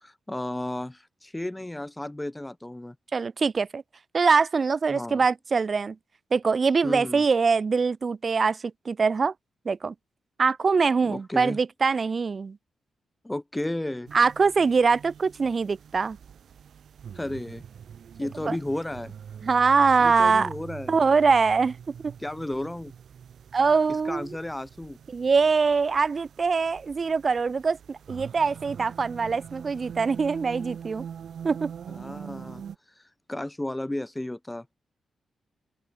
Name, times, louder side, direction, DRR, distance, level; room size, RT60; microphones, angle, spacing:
voice 1, 0.0-2.9 4.9-5.2 6.8-7.2 11.0-11.6 13.2-14.1 17.1-17.6 18.2-19.1 20.0-21.0 22.2-22.9 24.0-25.0 31.9-32.6 33.0-33.1 33.3-34.8, left 1 dB, 10° left, 0.9 m, -33 dB
voice 2, 3.1-3.8 4.1-6.0 6.3-9.3 9.7-9.9 10.4-12.6 14.1-16.2 18.4-18.6 19.4-20.5 20.9-21.9 23.5-24.3 25.1-31.1 31.4-31.7, right 5 dB, 35° right, 0.4 m, -23 dB
sound 1, 14.1-32.7, right 8 dB, 65° right, 2.1 m, -44 dB
open air
wide cardioid pair, 130°, 0 cm